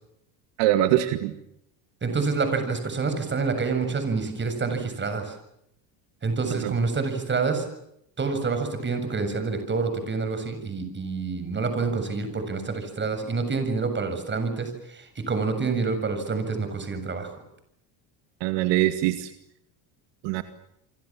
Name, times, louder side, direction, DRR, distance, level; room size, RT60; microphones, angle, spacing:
voice 1, 0.6-1.3 6.5-6.7 18.4-19.3 20.2-20.4, right 13 dB, 70° right, 9 dB, 2.2 m, -23 dB
voice 2, 2.0-5.3 6.2-7.7 8.2-17.3, right 4 dB, 25° right, 8 dB, 7.3 m, -27 dB
29.0 x 24.5 x 7.4 m, 0.78 s
supercardioid pair, 120°, 46 cm